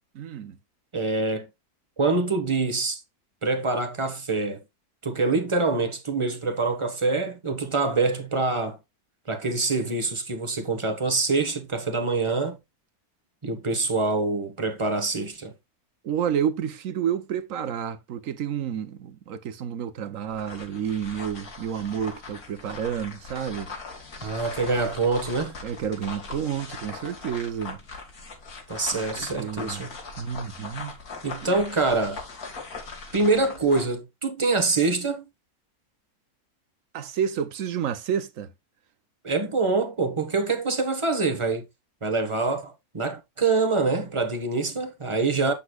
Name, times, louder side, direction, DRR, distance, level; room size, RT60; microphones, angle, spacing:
voice 1, 0.1-0.6 16.0-23.7 25.6-27.8 28.9-29.8 30.2-31.0 31.4-31.5 36.9-38.5, right 8 dB, 60° right, 1.2 m, -30 dB
voice 2, 0.9-1.5 2.0-3.0 3.4-4.6 5.0-8.8 9.3-12.6 13.4-15.5 24.2-25.5 28.7-29.9 31.2-32.2 33.1-35.2 39.2-41.6 42.0-45.5, right 3 dB, 20° right, 1.2 m, -25 dB
sound 1, 20.3-34.0, left 4 dB, 70° left, 2.5 m, -40 dB
8.2 x 6.9 x 2.4 m
omnidirectional pair, 1.6 m